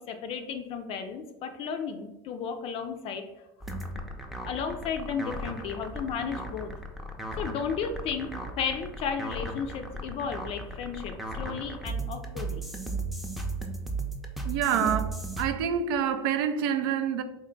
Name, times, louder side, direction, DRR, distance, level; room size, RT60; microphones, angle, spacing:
voice 1, 0.0-3.2 4.5-6.7 7.4-12.6 14.8-14.9, left 6 dB, 50° left, 0.4 m, -34 dB
sound 1, 3.6-15.5, right 2 dB, ahead, 0.5 m, -36 dB
voice 2, 14.4-15.1 15.4-17.2, right 8 dB, 75° right, 0.4 m, -27 dB
3.6 x 2.2 x 3.7 m
supercardioid pair, 95°, 13 cm